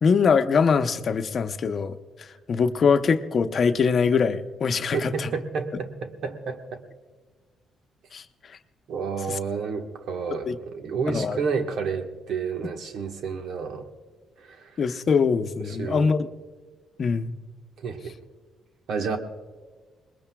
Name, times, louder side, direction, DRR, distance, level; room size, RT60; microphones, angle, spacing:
voice 1, 0.0-5.3 8.1-8.6 9.3-9.4 10.5-10.6 11.1-11.4 14.8-16.3 17.0-17.3, left 5 dB, 50° left, 8 dB, 0.8 m, -23 dB
voice 2, 4.9-6.8 8.9-13.9 14.4-14.8 15.7-16.1 17.8-18.2 18.9-19.2, right 5 dB, 70° right, 5 dB, 1.3 m, -30 dB
23.5 x 20.5 x 2.3 m, 1.5 s
cardioid pair, 90°, 0 cm